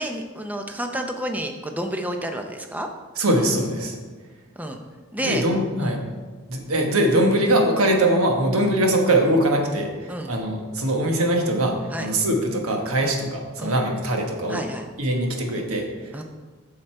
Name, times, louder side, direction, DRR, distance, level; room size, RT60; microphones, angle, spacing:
voice 1, 0.0-2.9 4.6-4.8 5.1-5.4 5.8-6.0 10.1-10.3 11.9-12.1 13.0-13.2 13.6-13.7 14.5-14.8 16.1-16.2, right 1 dB, 5° right, 4 dB, 0.5 m, -30 dB
voice 2, 3.2-4.0 5.2-6.0 6.5-14.6 15.0-16.2, right 1 dB, 80° right, 2 dB, 1.3 m, -22 dB
7.5 x 6.5 x 4.5 m, 1.4 s
head